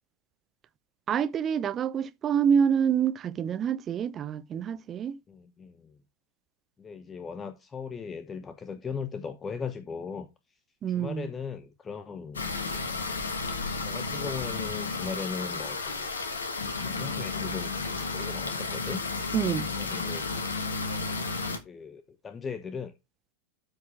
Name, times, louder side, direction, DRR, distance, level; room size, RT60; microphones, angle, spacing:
voice 1, 1.1-5.2 10.8-11.3 19.3-19.7, right 8 dB, 25° right, 0.7 m, -27 dB
voice 2, 5.3-6.0 6.8-10.3 10.9-13.1 13.8-16.1 16.8-17.7 18.1-19.0 19.8-20.3 21.6-22.9, left 5 dB, 20° left, 1.0 m, -38 dB
sound 1, 12.3-21.6, left 4 dB, 70° left, 1.4 m, -32 dB
13.0 x 4.8 x 3.3 m
figure-of-eight pair, 90°, 0 cm